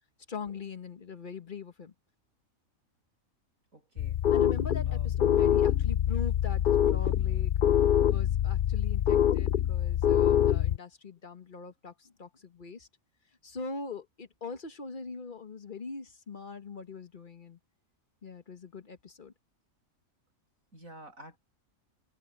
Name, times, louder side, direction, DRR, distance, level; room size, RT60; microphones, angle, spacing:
voice 1, 0.3-1.9 4.3-7.5 8.0-12.9 13.4-17.6 18.2-19.3, left 4 dB, 40° left, 1.4 m, -41 dB
voice 2, 3.7-4.2 4.9-5.1 20.7-21.4, right 1 dB, 80° right, 8.0 m, -50 dB
sound 1, 4.0-10.8, left 10 dB, 65° left, 0.5 m, -25 dB
omnidirectional pair, 1.4 m